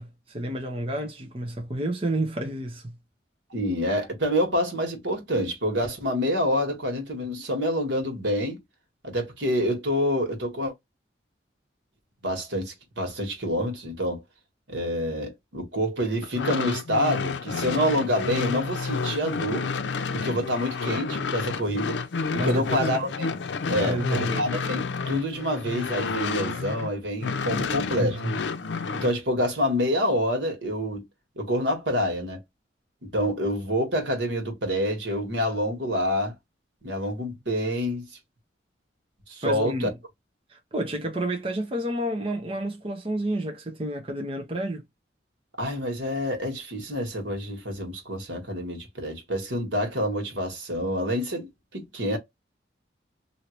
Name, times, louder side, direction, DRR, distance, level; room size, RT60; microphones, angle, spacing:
voice 1, 0.0-2.9 22.4-22.9 23.8-24.5 28.0-28.4 39.4-39.9 40.5-44.8, right 1 dB, 30° right, 0.8 m, -30 dB
voice 2, 3.5-8.6 9.0-10.7 12.2-14.2 14.7-19.7 20.1-22.0 22.3-23.3 23.7-28.2 28.9-31.0 31.3-32.4 33.0-36.3 36.8-38.1 39.3-39.9 45.6-52.2, equal, 90° right, 1.6 m, -27 dB
sound 1, 16.2-26.9 27.2-29.1, left 4 dB, 80° left, 0.5 m, -30 dB
2.9 x 2.8 x 3.0 m
head